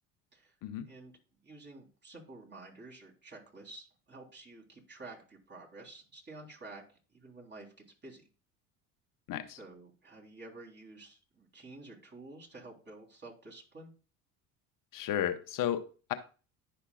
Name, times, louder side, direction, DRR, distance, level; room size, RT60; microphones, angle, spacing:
voice 1, 1.4-6.8 7.1-8.2 9.5-13.9, right 2 dB, 25° right, -2 dB, 3.4 m, -50 dB
voice 2, 14.9-16.1, left 10 dB, 55° left, 9 dB, 1.0 m, -33 dB
11.0 x 5.7 x 2.3 m, 0.35 s
hypercardioid pair, 70°, 40 cm